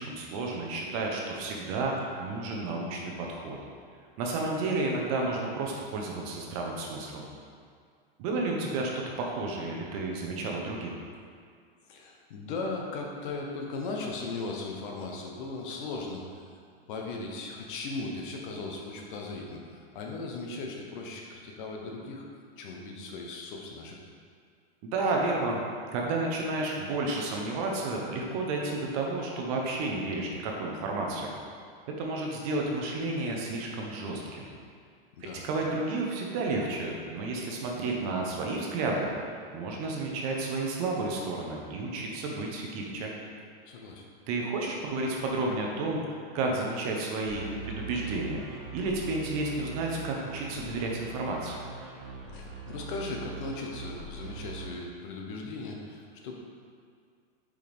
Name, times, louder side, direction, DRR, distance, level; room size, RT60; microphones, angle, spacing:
voice 1, 0.0-3.6 4.2-7.3 8.2-8.9 9.2-11.0 24.8-25.6 25.9-31.3 32.0-34.5 35.2-39.1 39.5-43.1 44.3-51.6, right 2 dB, 40° right, -1 dB, 0.9 m, -31 dB
voice 2, 11.9-16.4 16.9-22.3 22.6-24.0 35.2-35.5 43.6-44.0 52.3-56.3, left 3 dB, 55° left, 0 dB, 1.1 m, -37 dB
sound 1, 47.2-54.7, right 5 dB, 65° right, 1.4 m, -42 dB
6.5 x 5.1 x 3.6 m, 2.1 s
supercardioid pair, 165°, 30 cm